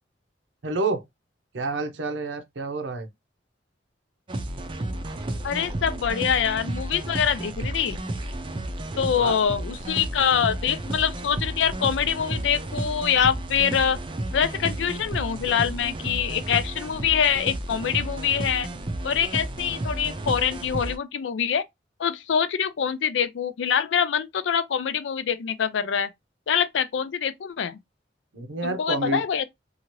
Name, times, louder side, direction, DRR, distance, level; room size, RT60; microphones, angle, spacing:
voice 1, 0.6-1.0 1.5-3.1 8.9-9.3 28.3-29.2, right 3 dB, 80° right, 0.7 m, -29 dB
sound 1, 4.3-21.0, right 1 dB, 30° right, 0.5 m, -32 dB
voice 2, 5.4-8.0 9.0-14.0 14.3-18.7 19.0-21.6 22.0-26.1 26.5-27.8 28.6-29.5, left 8 dB, 80° left, 0.4 m, -25 dB
2.8 x 2.5 x 2.9 m
head